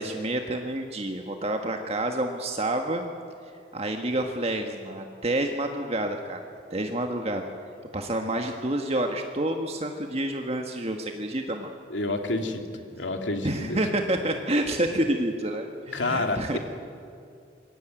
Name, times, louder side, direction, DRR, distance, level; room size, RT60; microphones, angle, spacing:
voice 1, 0.0-3.0 3.7-6.4 6.7-7.5 7.9-11.7 13.4-16.6, right 1 dB, 35° right, 4 dB, 1.5 m, -28 dB
voice 2, 11.9-13.8 15.9-16.6, left 2 dB, 90° left, 5 dB, 2.8 m, -29 dB
26.5 x 22.0 x 9.1 m, 2.4 s
head